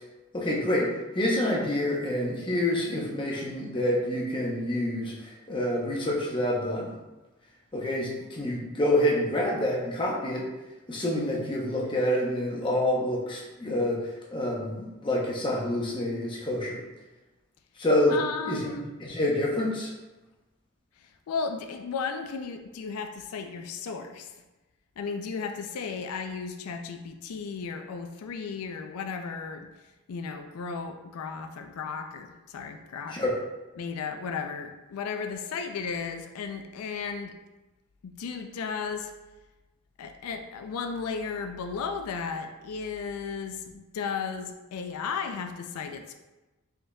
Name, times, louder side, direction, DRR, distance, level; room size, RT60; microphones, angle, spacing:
voice 1, 0.3-0.9 1.1-6.9 7.7-10.4 10.9-16.8 17.8-18.2 18.5-19.9 33.1-33.3, left 1 dB, 20° left, -3 dB, 0.7 m, -27 dB
voice 2, 18.1-18.9 21.0-24.3 25.0-29.7 30.1-33.2 33.8-37.3 38.0-39.1 40.0-46.1, left 5 dB, 80° left, 6 dB, 0.4 m, -34 dB
5.0 x 3.8 x 2.2 m, 1.1 s
head